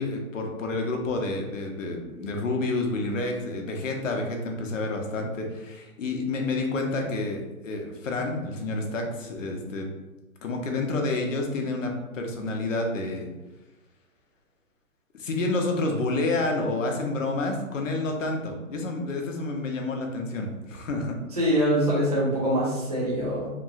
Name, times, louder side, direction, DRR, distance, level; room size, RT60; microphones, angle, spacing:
voice 1, 0.0-9.9 10.4-13.3 15.1-21.2, left 2 dB, 60° left, 2 dB, 0.7 m, -29 dB
voice 2, 21.4-23.5, equal, 30° right, -7 dB, 0.4 m, -24 dB
2.9 x 2.6 x 2.4 m, 1.1 s
hypercardioid pair, 165°, 43 cm